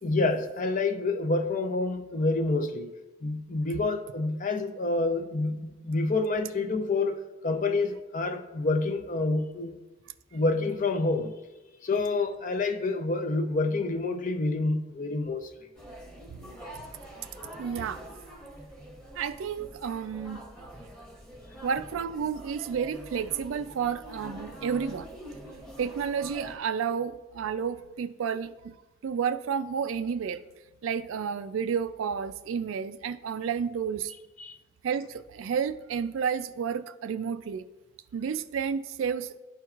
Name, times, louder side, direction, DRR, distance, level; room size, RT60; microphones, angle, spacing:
voice 1, 0.0-2.9 3.2-9.8 10.3-11.3 11.8-15.7 34.4-34.5, left 3 dB, 40° left, 0.5 m, -28 dB
sound 1, 15.7-26.6, equal, 5° left, 1.1 m, -45 dB
voice 2, 17.6-18.0 19.2-20.4 21.6-25.1 25.8-28.7 29.0-30.4 30.8-34.1 34.8-37.6 38.1-39.4, right 7 dB, 75° right, 0.3 m, -31 dB
12.5 x 4.5 x 2.4 m
head